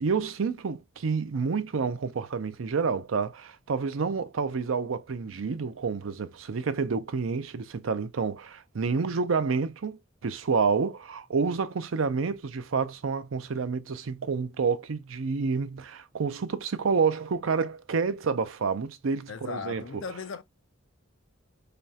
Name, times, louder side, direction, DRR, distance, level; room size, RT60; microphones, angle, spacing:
voice 1, 0.0-20.0, right 5 dB, 90° right, 0.5 m, -29 dB
voice 2, 19.3-20.4, left 5 dB, 80° left, 0.5 m, -37 dB
5.1 x 2.3 x 2.8 m
head